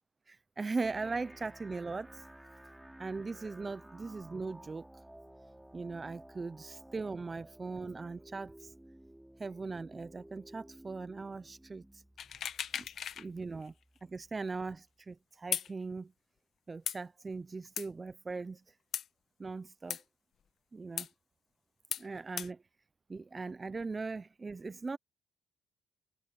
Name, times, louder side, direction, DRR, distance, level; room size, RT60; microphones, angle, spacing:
voice 1, 0.3-2.2 3.0-4.9 5.7-8.5 9.4-11.8 12.7-12.8 13.2-13.7 14.0-16.1 16.7-18.6 19.4-20.0 20.7-21.1 22.0-22.6 23.1-25.0, right 4 dB, 30° right, 0.8 m, -39 dB
sound 1, 0.8-14.8, right 1 dB, 5° right, 6.8 m, -55 dB
sound 2, 12.2-13.3 13.6-13.7 15.5-15.7 16.9-17.0 17.8-17.9 18.9-19.1 19.9-20.0 21.0-21.1 21.9-22.1 22.4-22.5, left 9 dB, 65° left, 1.3 m, -36 dB
cardioid pair, 80°, 0 cm